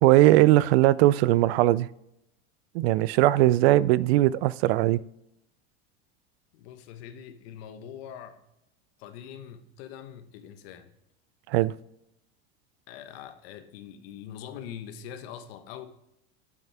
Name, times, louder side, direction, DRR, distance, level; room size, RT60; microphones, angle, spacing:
voice 1, 0.0-1.9 2.7-5.0 11.5-11.7, right 16 dB, 75° right, 20 dB, 0.5 m, -20 dB
voice 2, 6.5-8.4 9.0-11.0 12.9-15.9, left 9 dB, 70° left, 9 dB, 1.2 m, -43 dB
9.9 x 7.2 x 3.4 m, 0.82 s
supercardioid pair, 120°, 31 cm